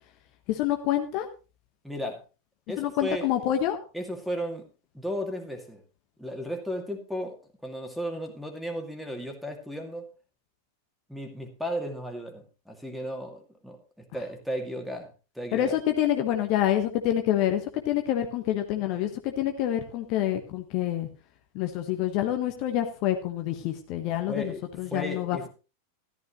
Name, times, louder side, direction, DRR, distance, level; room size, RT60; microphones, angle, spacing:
voice 1, 0.5-1.3 2.8-3.8 15.5-21.1 21.5-25.5, left 11 dB, 45° left, 6 dB, 1.2 m, -27 dB
voice 2, 1.8-2.2 2.7-3.3 3.9-4.6 4.9-5.8 6.2-7.4 7.6-10.1 11.1-13.8 14.1-15.1 15.4-15.8 24.3-24.6 24.9-25.5, equal, ahead, 4 dB, 2.3 m, -34 dB
13.5 x 12.5 x 3.1 m, 0.32 s
figure-of-eight pair, 90°, 0 cm